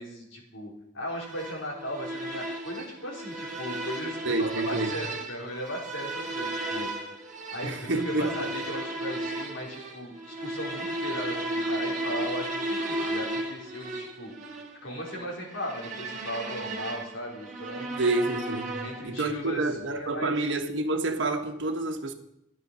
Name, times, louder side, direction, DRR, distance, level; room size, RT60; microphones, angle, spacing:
voice 1, 0.0-6.9 7.5-10.1 10.4-14.3 14.8-18.0 18.8-19.6 19.9-20.4, equal, 75° left, 3.8 m, -37 dB
sound 1, 1.2-19.2, right 1 dB, 35° right, 1.6 m, -35 dB
voice 2, 4.2-4.9 7.6-8.3 18.0-22.1, right 2 dB, 70° right, 1.2 m, -28 dB
12.0 x 10.5 x 5.5 m
head